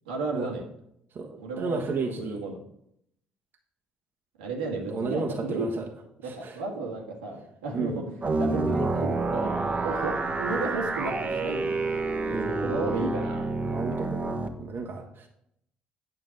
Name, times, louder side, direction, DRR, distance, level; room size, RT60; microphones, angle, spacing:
voice 1, 0.0-0.6 1.4-2.6 4.4-5.7 6.2-11.7 12.2-13.8, right 3 dB, 80° right, -1 dB, 1.8 m, -33 dB
voice 2, 1.1-2.4 4.9-5.9 6.2-6.6 7.7-7.9 12.3-12.9 13.6-15.3, right 4 dB, 45° right, 1 dB, 1.4 m, -33 dB
sound 1, 8.2-14.5, right 3 dB, 30° right, 1.3 m, -28 dB
9.4 x 5.7 x 5.4 m, 0.75 s
hypercardioid pair, 50°, 5 cm